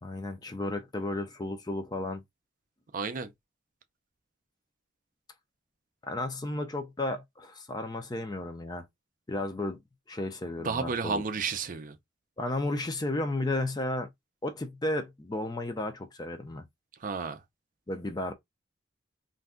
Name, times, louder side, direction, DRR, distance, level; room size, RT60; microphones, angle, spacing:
voice 1, 0.0-2.2 6.0-8.8 9.3-9.8 10.1-11.2 12.4-14.1 14.4-16.6 17.9-18.3, left 2 dB, 20° left, 0.5 m, -33 dB
voice 2, 2.9-3.3 10.6-12.0 17.0-17.4, right 5 dB, 45° right, 0.5 m, -32 dB
2.6 x 2.2 x 3.6 m
head